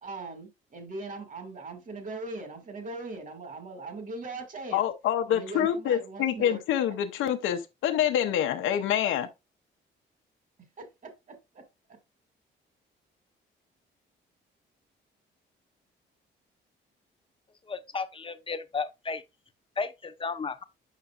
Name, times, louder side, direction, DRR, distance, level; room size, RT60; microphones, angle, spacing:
voice 1, 0.0-4.8 5.3-6.6 10.8-12.0, right 3 dB, 40° right, 2.2 m, -40 dB
voice 2, 4.7-9.3, left 10 dB, 85° left, 0.8 m, -26 dB
voice 3, 17.6-19.2 19.8-20.6, left 4 dB, 25° left, 0.8 m, -34 dB
8.2 x 5.5 x 2.4 m
cardioid pair, 90°, 20 cm